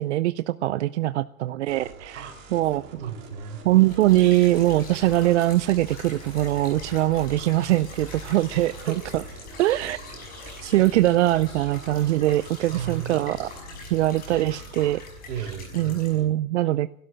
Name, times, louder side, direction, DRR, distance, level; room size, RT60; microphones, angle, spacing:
voice 1, 0.0-2.8 3.6-9.2 9.6-10.0 10.6-13.5 13.9-15.0 15.7-16.9, right 15 dB, 60° right, 15 dB, 0.5 m, -22 dB
sound 1, 1.7-14.9, right 4 dB, 35° right, 4.2 m, -46 dB
voice 2, 2.7-3.6 8.9-9.0 12.7-13.2 15.3-16.3, right 8 dB, 75° right, 5 dB, 4.7 m, -35 dB
sound 2, 3.8-16.2, left 2 dB, 20° left, 6.3 m, -42 dB
16.0 x 12.5 x 6.3 m, 0.73 s
hypercardioid pair, 150°, 41 cm